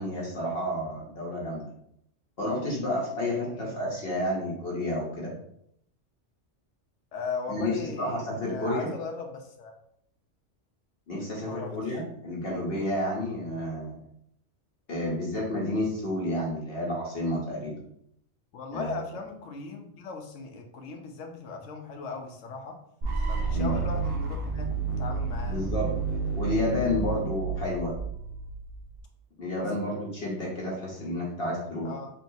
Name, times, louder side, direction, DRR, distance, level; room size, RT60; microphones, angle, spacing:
voice 1, 0.0-1.7 2.4-5.3 7.5-8.9 11.1-14.0 14.9-17.8 18.7-19.0 23.5-23.7 25.4-25.9 26.4-27.9 29.4-31.9, left 1 dB, 55° left, -3 dB, 1.1 m, -30 dB
voice 2, 3.4-3.9 7.1-9.7 11.4-12.0 18.5-22.8 23.3-25.7 29.6-29.9 30.9-31.2 31.8-32.1, left 4 dB, 85° left, 3 dB, 1.1 m, -38 dB
sound 1, 23.0-28.9, right 4 dB, 55° right, 1.0 m, -30 dB
4.5 x 3.1 x 2.7 m, 0.72 s
omnidirectional pair, 1.2 m